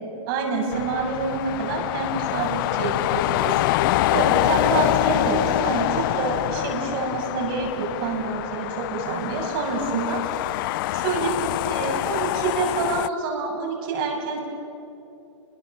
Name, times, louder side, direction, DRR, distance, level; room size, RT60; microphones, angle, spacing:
voice 1, 0.3-3.9 4.1-10.2 10.9-11.4 11.6-14.4, right 4 dB, 45° right, 0 dB, 6.9 m, -27 dB
sound 1, 0.7-13.1, left 16 dB, 45° left, 0.5 m, -25 dB
30.0 x 21.5 x 7.5 m, 2.9 s
hypercardioid pair, 135°, 16 cm